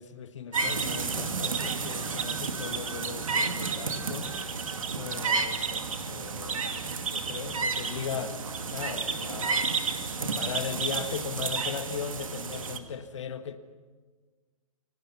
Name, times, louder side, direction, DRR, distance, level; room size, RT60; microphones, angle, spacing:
voice 1, 0.0-4.3 4.9-13.6, left 7 dB, 55° left, 1.6 m, -38 dB
sound 1, 0.5-12.8, right 4 dB, 70° right, 2.4 m, -31 dB
29.5 x 25.0 x 5.9 m
figure-of-eight pair, 115°, 18 cm